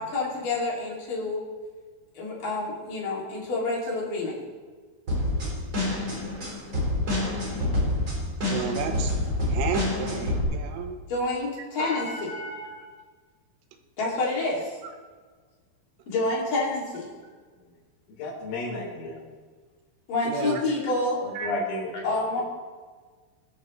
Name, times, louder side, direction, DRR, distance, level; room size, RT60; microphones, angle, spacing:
voice 1, 0.0-1.5 2.2-4.4 11.1-12.3 14.0-14.8 16.1-17.1 20.1-21.2 22.0-22.4, left 2 dB, 50° left, -4 dB, 3.9 m, -28 dB
sound 1, 5.1-10.4, left 1 dB, 25° right, 4.0 m, -27 dB
voice 2, 8.5-9.1 9.4-11.0 20.3-20.6 21.4-21.5, right 6 dB, 80° right, 5 dB, 3.5 m, -31 dB
voice 3, 11.8-12.8 17.6-17.7 18.1-19.2 21.4-22.2, left 2 dB, 85° left, -3 dB, 6.5 m, -34 dB
21.0 x 11.5 x 3.2 m, 1.5 s
omnidirectional pair, 5.8 m